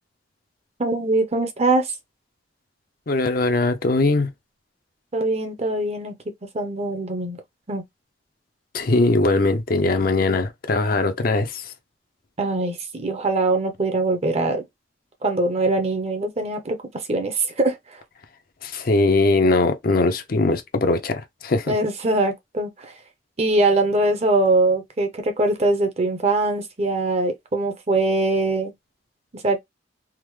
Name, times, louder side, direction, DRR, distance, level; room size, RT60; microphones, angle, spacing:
voice 1, 0.8-1.9 5.1-6.1 6.5-7.4 7.7-7.8 12.4-14.6 15.2-18.0 21.7-22.9 23.4-28.7 29.3-29.6, right 2 dB, 35° right, 0.7 m, -22 dB
voice 2, 3.1-4.3 8.7-11.6 18.6-21.7, left 2 dB, 55° left, 0.6 m, -20 dB
3.5 x 2.1 x 3.1 m
head